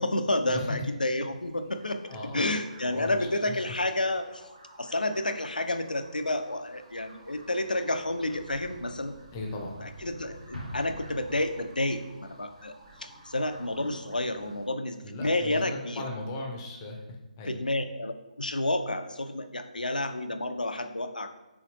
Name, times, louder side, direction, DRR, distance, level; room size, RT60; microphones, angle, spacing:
voice 1, 0.0-2.0 2.3-4.4 4.8-9.2 9.8-12.7 13.0-16.0 17.5-21.3, left 1 dB, 80° left, 8 dB, 0.4 m, -30 dB
sound 1, 1.3-14.7, right 1 dB, 40° right, 0.9 m, -52 dB
voice 2, 2.1-2.5 2.9-3.6 9.3-9.8 15.0-17.0 17.4-17.6, left 2 dB, 20° left, 1 dB, 0.6 m, -37 dB
Explosion, 10.5-12.2, equal, 85° right, 1.1 m, -42 dB
4.2 x 3.8 x 2.9 m, 1.0 s
figure-of-eight pair, 140°, 5 cm